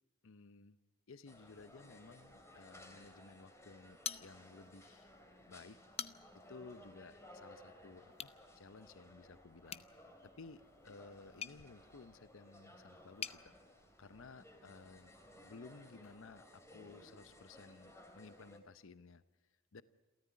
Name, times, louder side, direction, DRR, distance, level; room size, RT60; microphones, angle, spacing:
voice 1, 0.2-0.8 1.1-5.1 5.4-6.1 6.5-13.5 14.0-19.8, left 4 dB, 70° left, 14 dB, 0.7 m, -56 dB
sound 1, 1.3-18.6, left 1 dB, 15° left, 3.0 m, -59 dB
sound 2, 4.0-4.8 5.2-5.3 5.7-6.5 8.1-8.4 9.7-13.4, left 8 dB, 30° left, 0.8 m, -47 dB
28.0 x 14.0 x 9.4 m, 1.2 s
head